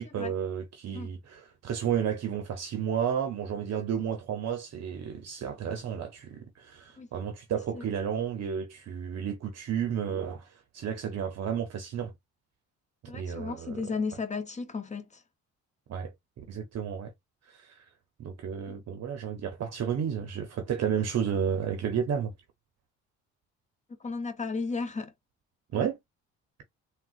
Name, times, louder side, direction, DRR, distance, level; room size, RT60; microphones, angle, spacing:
voice 1, 0.0-12.1 13.0-13.9 15.9-16.1 16.5-17.1 17.5-17.9 18.2-22.3 25.7-26.0, right 8 dB, 60° right, 0.7 m, -32 dB
voice 2, 13.1-15.2 24.0-25.1 25.7-25.9, left 4 dB, 25° left, 0.7 m, -34 dB
3.7 x 2.2 x 2.4 m
cardioid pair, 90°, 30 cm